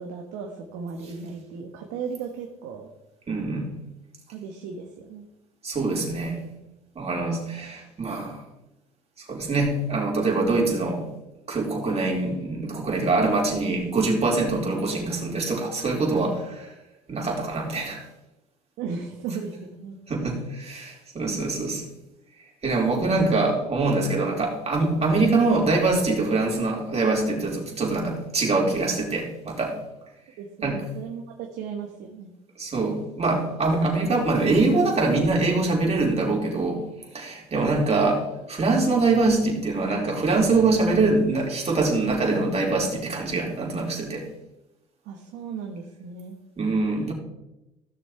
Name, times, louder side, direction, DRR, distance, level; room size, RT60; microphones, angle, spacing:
voice 1, 0.0-2.9 4.3-5.3 18.8-20.0 30.4-32.3 45.0-46.4, right 5 dB, 70° right, 2 dB, 1.5 m, -36 dB
voice 2, 3.3-3.7 5.6-6.4 7.0-8.4 9.3-11.1 11.5-16.7 17.1-18.0 20.1-21.8 22.6-29.8 30.6-30.8 32.6-36.8 37.1-44.2 46.6-47.1, right 3 dB, 35° right, -1 dB, 4.2 m, -24 dB
16.0 x 6.6 x 4.5 m, 0.94 s
hypercardioid pair, 70°, 18 cm